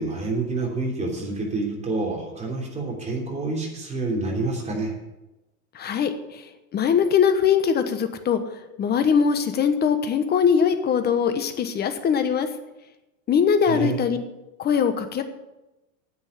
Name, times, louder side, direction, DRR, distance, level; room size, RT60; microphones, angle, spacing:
voice 1, 0.0-4.9 13.7-14.0, right 3 dB, 15° right, -1 dB, 3.2 m, -28 dB
voice 2, 5.7-8.4 8.8-12.5 13.3-14.2 14.6-15.2, left 7 dB, 20° left, 9 dB, 1.1 m, -21 dB
10.0 x 8.1 x 8.3 m, 0.98 s
supercardioid pair, 140°, 44 cm